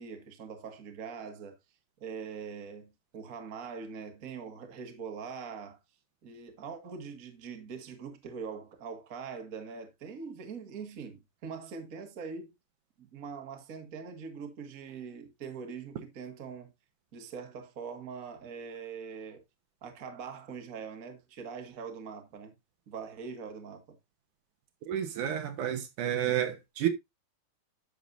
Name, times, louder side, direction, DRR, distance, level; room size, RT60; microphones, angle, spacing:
voice 1, 0.0-1.6 2.0-5.8 6.2-12.5 13.0-16.7 17.1-19.4 19.8-22.5 22.9-24.0, right 6 dB, 35° right, 1.5 m, -42 dB
voice 2, 24.9-26.9, right 10 dB, 70° right, 2.5 m, -30 dB
11.5 x 6.8 x 2.6 m
omnidirectional pair, 3.9 m